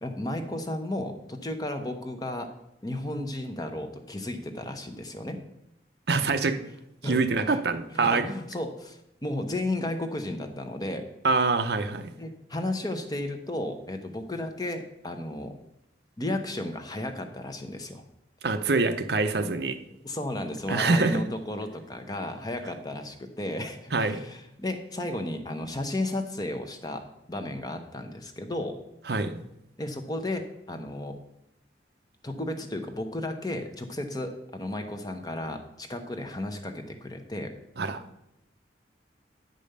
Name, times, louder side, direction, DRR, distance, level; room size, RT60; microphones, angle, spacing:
voice 1, 0.0-2.5 2.8-5.4 7.0-7.6 7.9-11.1 12.2-15.5 16.2-18.0 20.0-28.8 29.8-31.2 32.2-37.5, left 1 dB, 20° left, 6 dB, 0.8 m, -33 dB
voice 2, 6.1-6.6 7.0-8.3 11.2-12.1 18.4-19.8 20.7-21.2 23.9-24.2 29.1-29.3 37.8-38.0, right 3 dB, 65° right, 9 dB, 0.6 m, -25 dB
9.0 x 5.2 x 6.6 m, 0.84 s
head